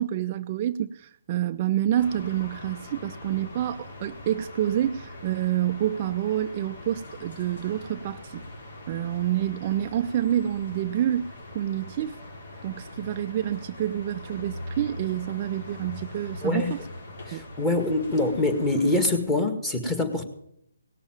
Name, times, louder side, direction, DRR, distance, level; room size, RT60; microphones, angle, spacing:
voice 1, 0.0-8.4 8.9-11.3 11.5-12.2 12.6-16.8 17.3-17.4, right 11 dB, 35° right, 8 dB, 0.5 m, -28 dB
sound 1, 2.0-19.2, left 1 dB, 60° left, 5.3 m, -42 dB
voice 2, 16.4-16.7 17.3-20.3, left 2 dB, 10° left, 5 dB, 1.9 m, -25 dB
18.0 x 7.1 x 9.0 m, 0.72 s
hypercardioid pair, 155°, 0 cm